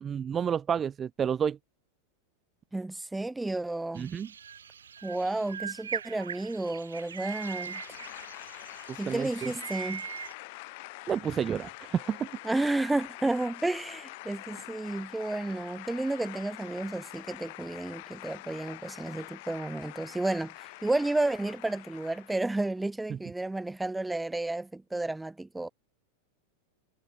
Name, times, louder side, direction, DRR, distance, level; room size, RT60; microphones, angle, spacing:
voice 1, 0.0-1.6 3.9-4.3 8.9-9.5 11.1-12.3, right 8 dB, 20° right, 0.7 m, -30 dB
voice 2, 2.7-4.1 5.0-7.8 9.0-10.1 12.4-25.7, right 2 dB, 5° right, 1.2 m, -32 dB
sound 1, 3.9-10.3, right 7 dB, 70° right, 2.2 m, -41 dB
sound 2, 6.6-22.7, left 25 dB, 50° left, 2.7 m, -46 dB
figure-of-eight pair, 90°, 0 cm